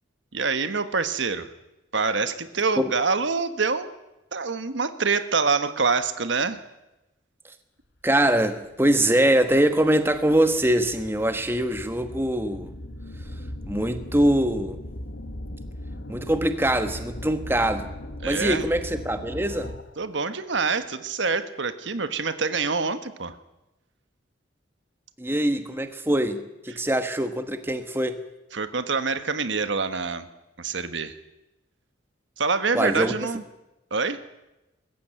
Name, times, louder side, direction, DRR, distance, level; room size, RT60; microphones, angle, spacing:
voice 1, 0.3-1.5 1.9-3.9 4.3-6.6 18.2-18.6 20.0-23.4 28.5-30.3 30.6-31.2 32.4-33.4 33.9-34.2, right 4 dB, 75° right, 11 dB, 1.3 m, -26 dB
voice 2, 8.0-12.7 13.7-14.8 16.1-17.9 18.2-19.7 25.2-28.2 32.7-33.1, right 1 dB, 10° right, 8 dB, 1.2 m, -23 dB
sound 1, 8.6-8.7 9.4-20.1, left 1 dB, 70° left, 1.6 m, -38 dB
20.5 x 15.0 x 9.1 m, 0.97 s
head